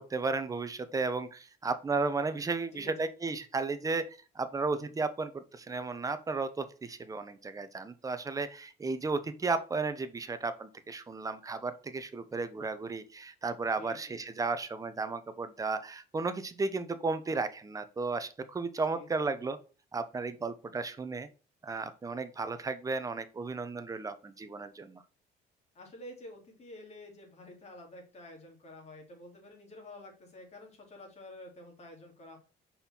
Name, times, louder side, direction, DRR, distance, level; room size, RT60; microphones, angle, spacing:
voice 1, 0.0-19.6 19.9-21.3 21.6-25.0, right 3 dB, 20° right, 11 dB, 0.8 m, -34 dB
voice 2, 13.8-14.3 18.9-19.4 25.7-32.4, left 1 dB, 40° left, 1 dB, 2.8 m, -49 dB
5.4 x 4.3 x 4.3 m, 0.35 s
cardioid pair, 110°, 17 cm